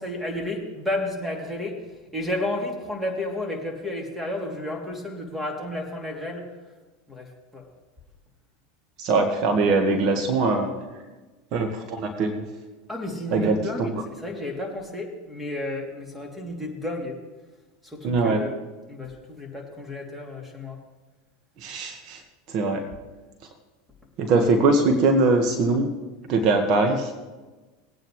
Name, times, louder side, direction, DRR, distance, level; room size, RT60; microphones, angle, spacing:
voice 1, 0.0-1.9 2.1-6.5 7.1-7.7 12.9-17.2 17.8-18.5 18.9-20.8, left 1 dB, 5° right, 1 dB, 2.9 m, -32 dB
voice 2, 9.0-10.7 11.5-12.5 13.3-13.9 18.0-18.4 21.6-22.2 22.5-22.9 24.2-25.9 26.3-27.1, right 3 dB, 50° right, 4 dB, 1.6 m, -22 dB
20.0 x 9.0 x 3.2 m, 1.2 s
hypercardioid pair, 95°, 0 cm